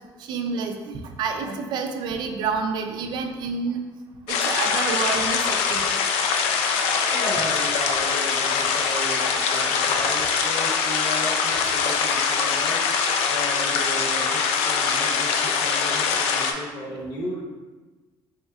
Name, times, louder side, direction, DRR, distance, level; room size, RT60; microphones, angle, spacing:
voice 1, 0.3-3.8 4.3-5.9, right 5 dB, 50° right, 5 dB, 0.4 m, -28 dB
sound 1, 4.3-16.5, left 6 dB, 85° left, 0.4 m, -23 dB
voice 2, 7.1-12.8 13.3-17.4, equal, 50° left, -5 dB, 1.0 m, -34 dB
4.1 x 3.4 x 2.3 m, 1.3 s
cardioid pair, 165°, 10 cm